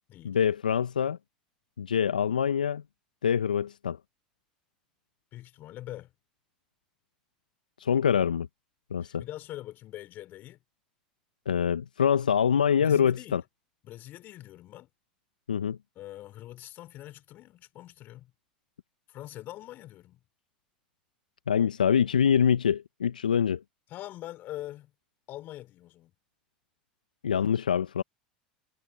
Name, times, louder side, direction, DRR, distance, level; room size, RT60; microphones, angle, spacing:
voice 1, 0.2-1.2 1.8-2.8 3.2-4.0 7.8-8.5 8.9-9.2 11.5-13.4 15.5-15.8 21.5-23.6 27.2-28.0, left 8 dB, 85° left, 0.8 m, -25 dB
voice 2, 5.3-6.1 9.0-10.6 12.8-13.4 13.8-14.9 15.9-18.3 19.1-20.2 23.9-24.9 25.3-26.1, left 14 dB, 50° left, 4.9 m, -43 dB
hypercardioid pair, 80°, 4 cm